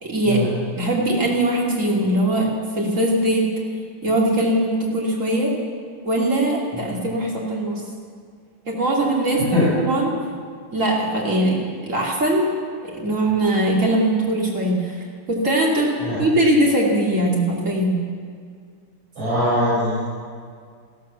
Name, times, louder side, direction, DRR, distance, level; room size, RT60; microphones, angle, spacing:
voice 1, 0.0-0.4 0.8-2.5 2.7-3.5 4.0-5.5 6.0-7.8 8.7-10.1 10.7-12.5 12.8-14.8 15.3-15.9 16.2-18.0, right 1 dB, 35° right, -3 dB, 3.3 m, -21 dB
voice 2, 19.2-20.0, left 1 dB, 65° right, -11 dB, 6.6 m, -22 dB
15.0 x 13.5 x 7.2 m, 2.1 s
omnidirectional pair, 2.3 m